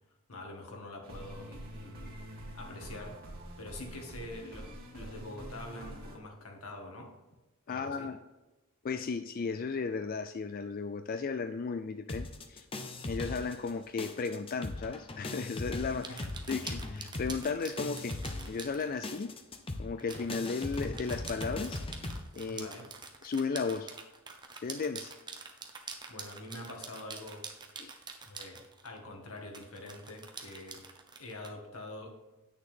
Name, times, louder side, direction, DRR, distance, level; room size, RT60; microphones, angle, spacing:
voice 1, 0.3-2.2 2.5-3.2 3.6-7.1 7.7-8.1 16.1-16.2 22.5-22.9 26.1-27.5 28.2-30.9 31.2-32.2, left 1 dB, 75° left, 1 dB, 2.0 m, -45 dB
sound 1, 1.0-6.2, right 1 dB, 45° right, 2.1 m, -46 dB
voice 2, 7.7-8.2 8.8-12.7 13.0-18.2 18.5-19.3 19.8-21.8 22.3-22.7 23.2-24.0 24.6-25.1 27.8-27.9, left 4 dB, 40° left, 9 dB, 0.3 m, -35 dB
sound 2, 12.1-13.7 14.0-22.2, left 2 dB, 25° left, 0.8 m, -39 dB
sound 3, 16.0-19.0 20.0-29.0 29.5-31.5, right 4 dB, 20° right, 0.9 m, -46 dB
9.5 x 6.6 x 3.6 m, 1.1 s
head